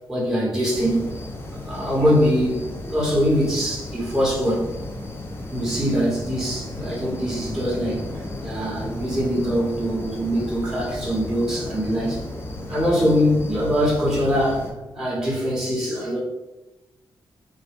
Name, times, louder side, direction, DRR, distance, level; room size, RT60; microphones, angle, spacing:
voice 1, 0.1-1.1 1.6-4.7 5.5-12.2 12.7-16.2, equal, 5° right, -6 dB, 0.9 m, -23 dB
sound 1, 0.7-14.7, left 1 dB, 30° left, 0.5 m, -34 dB
2.8 x 2.1 x 3.3 m, 1.0 s
wide cardioid pair, 120°, 8 cm